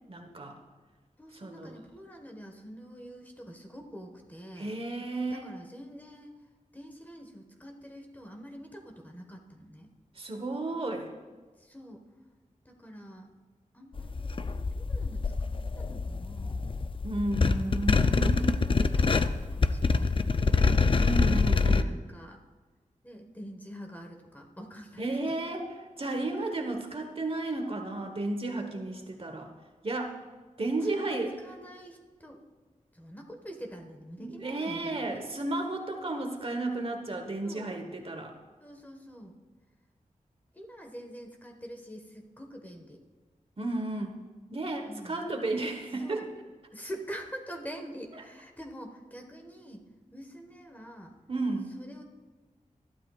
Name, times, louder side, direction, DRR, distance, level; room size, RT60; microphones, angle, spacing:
voice 1, 0.1-0.6 1.3-1.8 4.6-5.5 10.1-11.1 17.0-18.5 21.0-22.0 25.0-29.5 29.8-30.2 30.6-31.4 34.2-38.3 43.6-44.2 44.5-46.3 51.3-51.7, right 2 dB, 45° right, 4 dB, 1.3 m, -33 dB
voice 2, 1.2-4.8 5.3-6.3 6.7-9.9 11.6-12.0 12.6-13.3 13.7-14.3 14.7-15.3 15.8-16.7 17.9-20.9 21.8-22.4 23.0-25.1 30.8-32.4 32.9-35.3 37.4-37.8 38.6-39.3 40.5-43.0 44.8-45.3 46.0-46.3 46.7-49.8 50.1-51.1 51.7-52.0, equal, 10° left, 2 dB, 1.5 m, -45 dB
sound 1, 14.0-21.8, left 4 dB, 40° left, 0.5 m, -26 dB
20.5 x 12.0 x 2.5 m, 1.4 s
wide cardioid pair, 95°, 14 cm